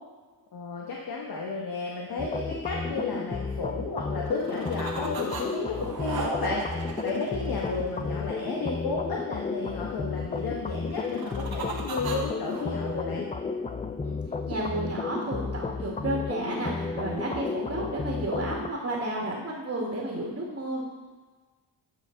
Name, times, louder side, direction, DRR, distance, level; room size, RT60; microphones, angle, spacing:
voice 1, 0.5-13.3, left 3 dB, 55° left, -2 dB, 1.2 m, -33 dB
sound 1, 2.2-18.7, left 4 dB, 15° left, 0.3 m, -33 dB
sound 2, 4.3-5.4 5.7-8.2 10.9-12.7, right 4 dB, 55° right, 1.4 m, -37 dB
voice 2, 14.4-20.8, right 1 dB, 30° right, -3 dB, 2.0 m, -32 dB
9.7 x 4.4 x 4.0 m, 1.3 s
supercardioid pair, 60°, 44 cm